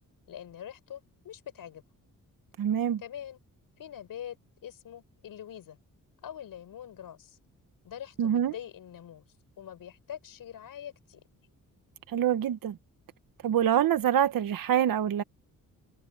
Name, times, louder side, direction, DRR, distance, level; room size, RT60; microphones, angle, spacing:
voice 1, 0.3-1.8 3.0-3.4 3.8-4.4 4.6-5.8 6.2-7.4 7.8-9.2 9.6-11.2, left 10 dB, 85° left, 6.7 m, -44 dB
voice 2, 2.6-3.0 8.2-8.5 12.1-12.8 13.4-15.2, right 10 dB, 85° right, 1.6 m, -25 dB
wide cardioid pair, 130°, 33 cm